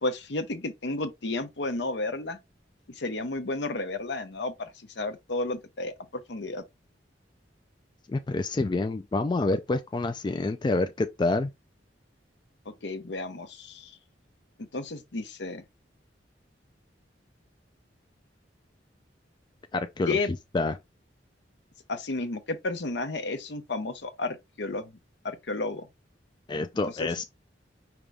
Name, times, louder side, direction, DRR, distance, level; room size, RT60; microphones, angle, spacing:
voice 1, 0.0-2.4 2.9-6.6 12.8-14.0 14.7-15.6 20.1-20.3 21.9-24.9 25.2-25.9 27.0-27.2, left 2 dB, 70° left, 0.8 m, -32 dB
voice 2, 8.1-11.5 19.7-20.2 20.5-20.8 26.5-27.2, left 2 dB, 25° left, 0.3 m, -27 dB
5.1 x 2.9 x 3.3 m
head